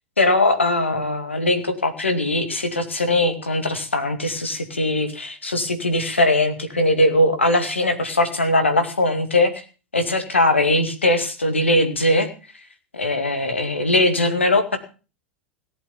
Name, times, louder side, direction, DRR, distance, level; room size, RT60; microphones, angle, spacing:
voice 1, 0.2-9.6 9.9-12.3 12.9-14.8, left 1 dB, 90° left, 8 dB, 2.4 m, -20 dB
18.0 x 7.9 x 7.2 m, 0.36 s
figure-of-eight pair, 90°, 6 cm